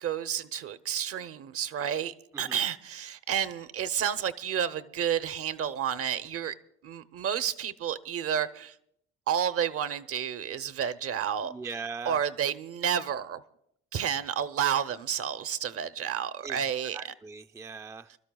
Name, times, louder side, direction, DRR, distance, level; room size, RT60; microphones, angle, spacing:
voice 1, 0.0-6.5 6.8-8.8 9.3-11.5 12.1-13.4 13.9-17.0, right 9 dB, 50° right, 0.8 m, -30 dB
voice 2, 11.4-12.2 16.4-16.6 16.9-18.2, right 4 dB, 10° right, 0.4 m, -40 dB
27.5 x 12.5 x 2.3 m
hypercardioid pair, 60°, 30 cm